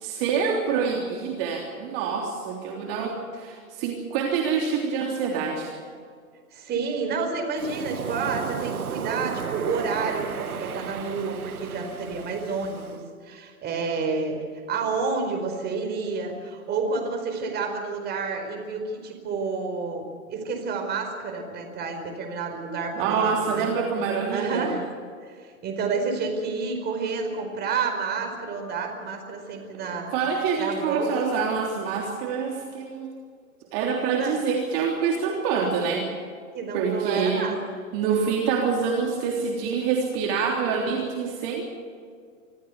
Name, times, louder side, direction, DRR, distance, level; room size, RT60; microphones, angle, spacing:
voice 1, 0.0-5.8 23.0-24.8 29.8-33.1 33.7-36.1 36.7-37.5 37.9-41.6, right 6 dB, 40° right, 0 dB, 3.5 m, -26 dB
voice 2, 6.5-14.4 14.7-23.7 24.3-24.9 25.2-30.1 30.6-31.1 34.1-34.4 35.8-36.0 36.5-37.6, right 4 dB, 25° right, 4 dB, 4.7 m, -30 dB
Waves surf, 7.6-13.0, right 7 dB, 90° right, 1.2 m, -34 dB
26.0 x 15.0 x 8.2 m, 2.1 s
hypercardioid pair, 125°, 42 cm